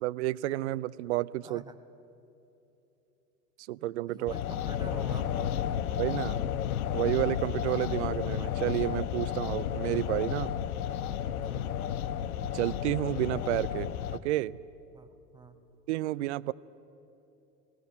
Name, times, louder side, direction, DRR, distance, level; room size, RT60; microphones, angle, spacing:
voice 1, 0.0-1.6 3.7-4.3 6.0-6.4 6.9-10.6 12.5-14.6 15.9-16.5, right 16 dB, 45° right, 20 dB, 0.5 m, -31 dB
voice 2, 1.4-1.8 4.1-5.7 11.3-11.8 14.9-15.6, right 3 dB, 10° right, 9 dB, 1.0 m, -47 dB
sound 1, 4.3-14.2, left 9 dB, 60° left, 1.0 m, -32 dB
20.5 x 17.0 x 8.9 m, 2.9 s
figure-of-eight pair, 95°, 49 cm